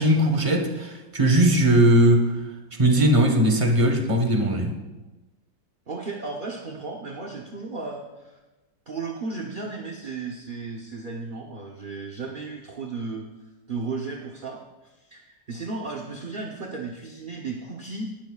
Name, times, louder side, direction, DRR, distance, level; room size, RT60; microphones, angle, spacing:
voice 1, 0.0-2.4 2.8-4.7, right 1 dB, 20° right, 4 dB, 1.1 m, -19 dB
voice 2, 5.9-8.4 8.9-13.3 13.7-18.1, right 3 dB, 40° right, 0 dB, 0.8 m, -34 dB
18.0 x 12.0 x 2.4 m, 1.1 s
omnidirectional pair, 2.0 m